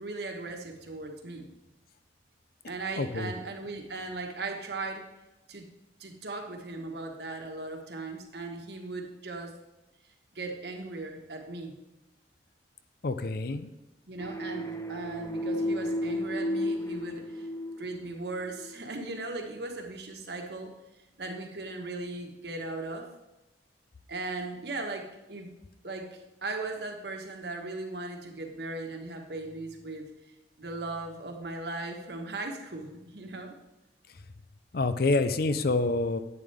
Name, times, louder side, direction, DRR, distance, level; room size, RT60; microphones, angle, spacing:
voice 1, 0.0-1.5 2.6-5.1 5.5-5.7 6.0-9.6 10.3-11.8 14.1-17.5 17.8-20.7 21.2-23.1 24.1-25.5 25.8-33.5, right 2 dB, 65° right, 3 dB, 1.5 m, -38 dB
voice 2, 3.0-3.3 13.0-13.7 34.7-36.2, left 3 dB, 55° left, 11 dB, 0.6 m, -27 dB
sound 1, 14.2-18.7, left 1 dB, 15° left, 0.6 m, -33 dB
11.0 x 8.5 x 3.5 m, 1.0 s
head